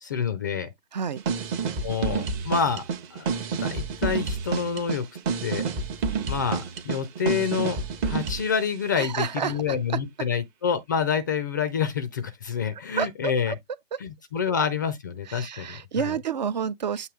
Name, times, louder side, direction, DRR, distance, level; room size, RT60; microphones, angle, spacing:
voice 1, 0.0-0.7 1.8-2.8 3.1-3.3 3.6-5.0 5.4-5.6 6.3-7.8 8.0-13.6 14.0-16.1, left 7 dB, 20° left, 0.4 m, -27 dB
voice 2, 0.9-1.2 8.9-9.8 13.0-13.6 13.9-14.0 15.3-17.1, right 7 dB, 45° right, 0.5 m, -30 dB
sound 1, 1.1-8.6, right 5 dB, 20° right, 0.8 m, -29 dB
7.7 x 2.7 x 4.7 m
figure-of-eight pair, 130°, 32 cm